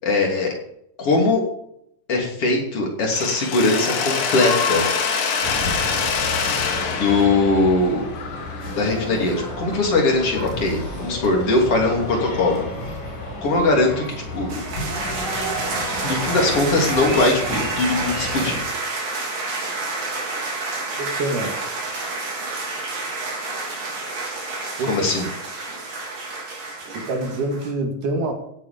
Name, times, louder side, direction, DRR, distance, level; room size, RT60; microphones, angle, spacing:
voice 1, 0.0-0.5 1.0-1.4 2.1-4.8 6.9-8.0 8.8-12.6 13.4-14.0 14.3-14.6 16.0-18.6 24.9-25.3, left 2 dB, 45° left, 0 dB, 3.8 m, -20 dB
Mechanisms, 3.1-9.0, left 5 dB, 85° left, 3.5 m, -25 dB
sound 1, 5.4-18.6, left 1 dB, 70° left, 5.6 m, -32 dB
sound 2, 14.5-27.7, right 3 dB, 85° right, 5.5 m, -29 dB
voice 2, 21.0-21.6 24.8-25.0 26.9-28.3, right 2 dB, 65° right, 2 dB, 3.7 m, -25 dB
16.5 x 8.8 x 5.2 m, 0.76 s
omnidirectional pair, 3.9 m